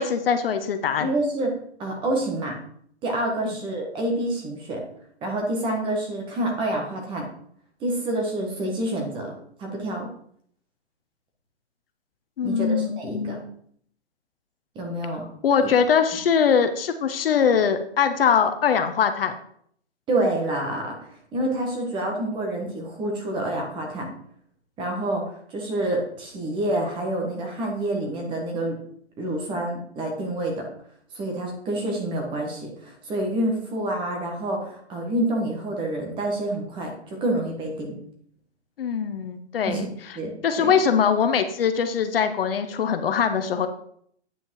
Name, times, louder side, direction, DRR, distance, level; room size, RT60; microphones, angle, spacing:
voice 1, 0.0-1.1 3.4-3.6 12.4-13.4 15.4-19.3 38.8-39.9 40.4-43.7, left 7 dB, 55° left, 8 dB, 0.9 m, -22 dB
voice 2, 1.0-1.5 1.8-2.5 3.0-4.8 5.2-7.2 7.8-10.1 12.4-13.4 14.7-15.2 15.6-15.7 20.1-21.0 21.3-24.1 24.8-28.7 29.2-30.7 31.1-38.0 39.6-40.3 40.6-40.7, right 1 dB, 15° right, 1 dB, 1.6 m, -27 dB
9.0 x 5.3 x 4.7 m, 0.65 s
hypercardioid pair, 155°, 34 cm